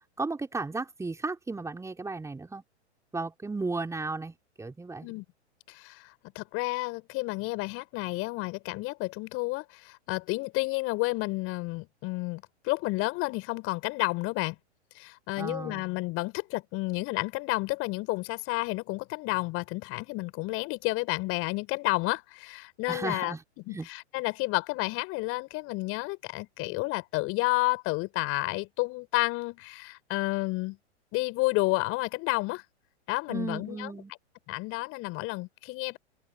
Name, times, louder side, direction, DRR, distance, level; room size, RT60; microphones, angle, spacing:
voice 1, 0.2-2.6 3.1-5.1 15.4-15.8 22.9-23.4 23.7-23.9 33.3-34.1, right 3 dB, 10° right, 5.3 m, -34 dB
voice 2, 5.7-14.5 14.9-23.3 23.7-30.8 31.1-32.6 33.1-33.9 34.5-36.0, left 23 dB, 40° left, 6.4 m, -31 dB
figure-of-eight pair, 105°, 35 cm